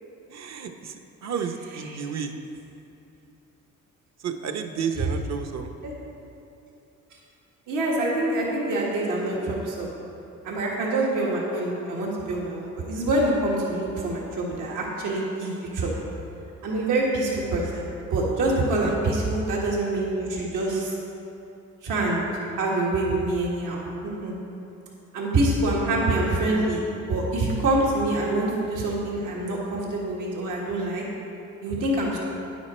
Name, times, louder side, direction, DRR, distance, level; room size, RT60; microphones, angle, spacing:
voice 1, 0.3-2.6 4.2-5.7 18.8-19.0, right 6 dB, 60° right, 6 dB, 0.9 m, -32 dB
voice 2, 7.7-9.9 10.4-15.9 16.6-20.9 21.8-22.3 22.6-24.3 25.1-26.8 27.1-31.0 31.6-32.2, right 2 dB, 85° right, -4 dB, 1.8 m, -25 dB
10.0 x 8.4 x 4.3 m, 2.9 s
cardioid pair, 90°, 30 cm